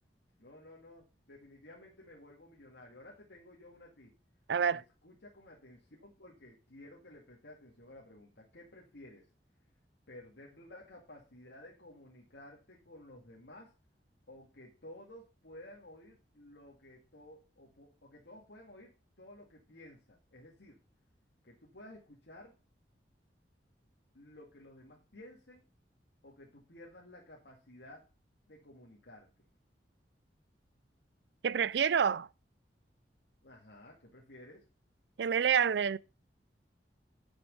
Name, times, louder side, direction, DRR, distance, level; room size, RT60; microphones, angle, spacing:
voice 1, 0.4-4.1 4.7-9.3 10.1-13.7 14.3-20.8 21.4-22.6 24.1-25.6 26.2-28.1 28.5-29.3 33.4-34.7, left 1 dB, 75° left, 2.1 m, -54 dB
voice 2, 4.5-4.8 31.4-32.3 35.2-36.0, right 7 dB, 75° right, 0.4 m, -28 dB
9.6 x 6.3 x 5.3 m
head